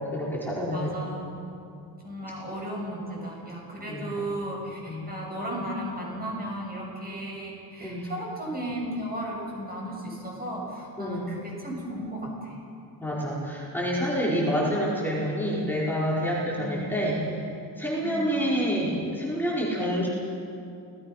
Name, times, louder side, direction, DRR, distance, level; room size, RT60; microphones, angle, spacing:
voice 1, 0.1-1.0 3.9-4.2 4.9-5.0 7.8-8.1 11.0-11.3 13.0-17.4 17.8-20.1, equal, 5° left, -6 dB, 4.7 m, -28 dB
voice 2, 0.7-1.4 2.0-12.6 16.5-17.1 18.0-18.4, equal, 20° right, -2 dB, 7.3 m, -35 dB
29.0 x 19.0 x 5.8 m, 2.6 s
wide cardioid pair, 150°, 42 cm